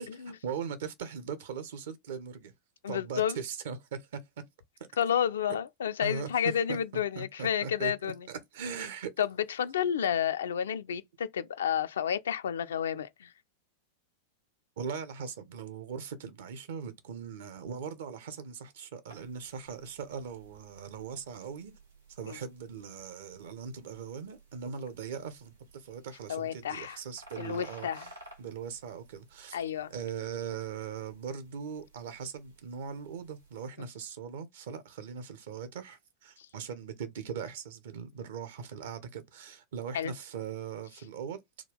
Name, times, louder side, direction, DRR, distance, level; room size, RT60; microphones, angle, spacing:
voice 1, 0.0-2.5 2.9-4.2 4.8-4.9 6.0-6.8 7.1-9.1 14.8-21.7 22.2-29.6 29.9-41.4, right 6 dB, 55° right, 0.7 m, -40 dB
voice 2, 2.8-3.4 5.0-8.2 9.2-13.3 22.3-22.4 26.3-27.0 27.4-28.1 29.5-29.9 39.9-40.1, left 9 dB, 65° left, 0.3 m, -31 dB
sound 1, 19.1-33.7, right 1 dB, 75° right, 1.2 m, -56 dB
3.5 x 2.3 x 3.4 m
figure-of-eight pair, 90°, 0 cm